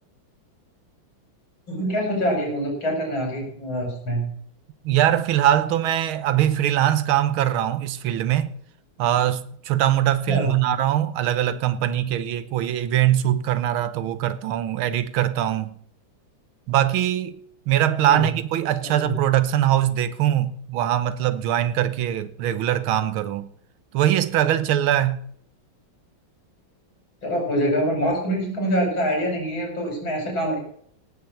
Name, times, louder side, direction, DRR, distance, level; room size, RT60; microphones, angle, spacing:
voice 1, 1.7-4.2 10.3-10.6 18.1-18.3 18.8-19.2 27.2-30.6, equal, 75° left, 5.5 m, -25 dB
voice 2, 4.8-8.6 9.0-15.8 16.7-17.4 17.7-23.5 23.9-25.2, right 11 dB, 85° right, 1.7 m, -22 dB
17.5 x 6.5 x 7.2 m
omnidirectional pair, 2.2 m